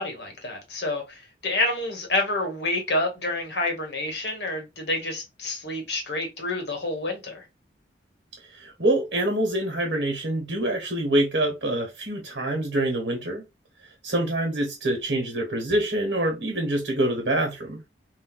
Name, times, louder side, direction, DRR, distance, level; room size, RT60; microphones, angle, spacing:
voice 1, 0.0-7.4, left 2 dB, 65° left, 1.1 m, -28 dB
voice 2, 8.5-13.4 14.0-17.8, right 1 dB, 80° right, 1.1 m, -25 dB
3.3 x 2.2 x 2.2 m
head